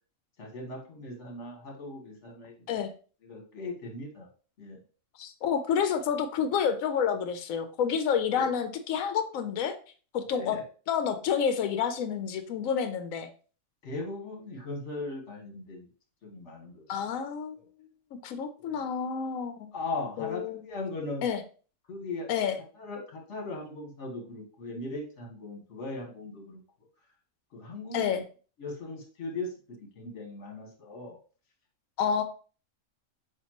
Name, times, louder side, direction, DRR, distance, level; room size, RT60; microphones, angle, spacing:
voice 1, 0.4-2.5 3.2-4.3 4.6-4.8 8.3-8.5 10.3-10.6 13.8-15.9 16.2-16.8 18.6-18.9 19.7-21.3 21.9-22.3 22.8-26.6 27.5-28.1 28.6-31.2, left 2 dB, 60° left, 1 dB, 1.6 m, -38 dB
voice 2, 5.2-9.8 10.1-10.6 10.9-13.3 16.9-17.6 18.2-19.7 20.2-20.6 21.2-21.4 22.3-22.6 27.9-28.2 32.0-32.2, left 7 dB, 85° left, 9 dB, 1.0 m, -29 dB
6.6 x 2.6 x 2.9 m, 0.39 s
omnidirectional pair, 1.4 m